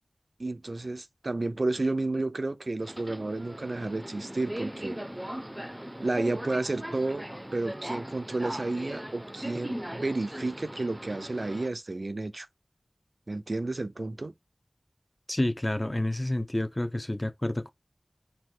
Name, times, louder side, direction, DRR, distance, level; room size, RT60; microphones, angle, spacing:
voice 1, 0.4-5.0 6.0-12.5 13.3-14.3, right 2 dB, 65° right, 0.5 m, -31 dB
Subway metro underground, 2.8-11.7, equal, 15° right, 0.7 m, -39 dB
voice 2, 15.3-17.7, left 1 dB, 25° left, 0.8 m, -29 dB
4.5 x 2.6 x 3.8 m
wide cardioid pair, 45°, 0 cm